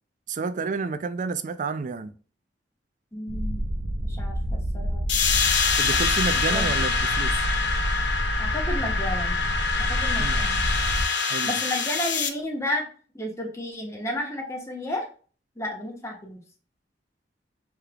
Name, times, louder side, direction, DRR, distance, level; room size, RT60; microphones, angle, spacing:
voice 1, 0.3-2.1 5.8-7.5 10.2-10.5 11.3-11.5, right 4 dB, 45° right, 0.4 m, -30 dB
voice 2, 3.1-3.6 4.0-5.0 6.4-6.7 8.4-9.4 9.9-10.6 11.4-12.9 13.1-15.1 15.6-16.4, left 1 dB, 15° left, 1.1 m, -32 dB
sound 1, 3.3-11.0, equal, 75° right, 0.7 m, -28 dB
sound 2, 5.1-12.3, left 5 dB, 75° left, 0.6 m, -25 dB
4.7 x 3.4 x 2.3 m
head